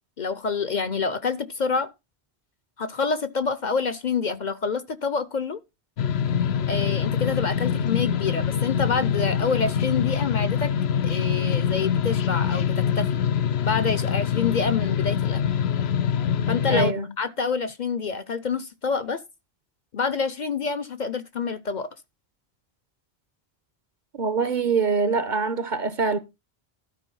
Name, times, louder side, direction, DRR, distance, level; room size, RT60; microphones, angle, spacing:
voice 1, 0.2-1.9 2.8-5.6 6.7-10.7 11.0-13.2 13.6-15.4 16.5-19.2 19.9-21.9, left 5 dB, 50° left, 0.7 m, -27 dB
sound 1, 6.0-16.9, left 8 dB, 80° left, 0.9 m, -24 dB
voice 2, 16.7-17.1 24.1-26.2, right 5 dB, 50° right, 1.1 m, -24 dB
12.5 x 4.9 x 5.4 m
omnidirectional pair, 1.1 m